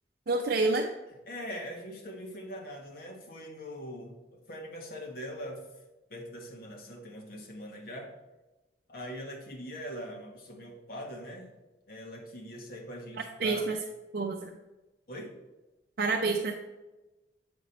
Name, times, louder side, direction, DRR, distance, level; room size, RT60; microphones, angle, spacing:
voice 1, 0.3-0.9 13.4-13.8 14.1-14.5 16.0-16.5, right 3 dB, 55° right, 3 dB, 0.5 m, -28 dB
voice 2, 1.3-5.6 6.1-8.1 8.9-11.6 11.9-13.6 15.1-15.3, equal, 55° left, 1 dB, 1.3 m, -42 dB
7.9 x 5.1 x 4.1 m, 1.1 s
head